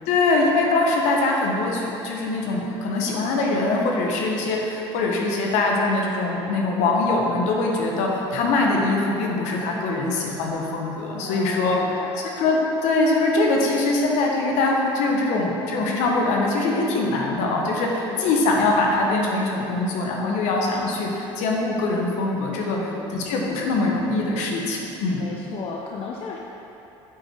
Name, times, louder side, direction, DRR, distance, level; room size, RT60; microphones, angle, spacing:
voice 1, 0.1-12.0 12.4-22.8 23.1-25.2, left 2 dB, 70° left, -1 dB, 1.3 m, -23 dB
voice 2, 11.2-12.1 17.9-18.3 22.7-23.1 25.1-26.4, left 5 dB, 50° left, -1 dB, 0.7 m, -35 dB
8.2 x 5.4 x 4.6 m, 3.0 s
supercardioid pair, 85°, 13 cm